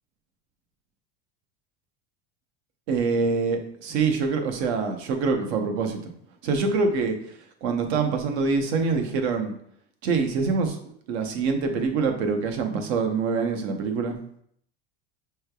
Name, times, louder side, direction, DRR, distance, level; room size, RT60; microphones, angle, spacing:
voice 1, 2.9-6.1 6.4-7.1 7.6-9.5 10.0-10.8 11.1-14.2, right 4 dB, 70° right, 5 dB, 0.8 m, -25 dB
5.5 x 3.2 x 2.3 m, 0.67 s
cardioid pair, 170°, 33 cm